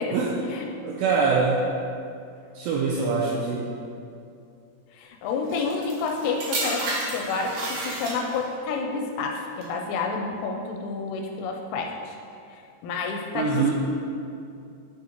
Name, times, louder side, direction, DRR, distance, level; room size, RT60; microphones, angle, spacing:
voice 1, 0.8-1.6 2.6-3.7 13.3-13.7, right 4 dB, 85° right, -2 dB, 2.5 m, -24 dB
voice 2, 4.9-12.1 12.8-13.7, left 4 dB, 90° left, 2 dB, 3.1 m, -29 dB
sound 1, 5.5-8.6 9.4-9.6, right 2 dB, 65° right, 2.2 m, -31 dB
11.0 x 6.3 x 2.9 m, 2.5 s
omnidirectional pair, 5.5 m